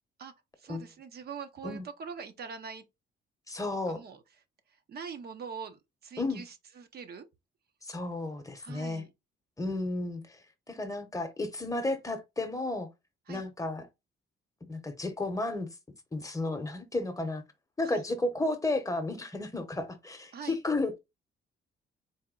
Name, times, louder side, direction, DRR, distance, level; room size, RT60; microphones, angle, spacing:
voice 1, 0.6-2.8 3.9-4.2 4.9-7.3 8.6-9.1 13.3-13.4 17.8-18.0 20.3-20.6, right 6 dB, 55° right, 0.6 m, -43 dB
voice 2, 3.5-4.0 6.2-6.4 7.8-9.0 9.6-10.4 10.7-12.9 13.3-13.9 14.7-15.7 16.1-17.4 17.8-21.0, left 2 dB, 15° left, 0.8 m, -33 dB
4.1 x 2.1 x 3.7 m
cardioid pair, 90°, 20 cm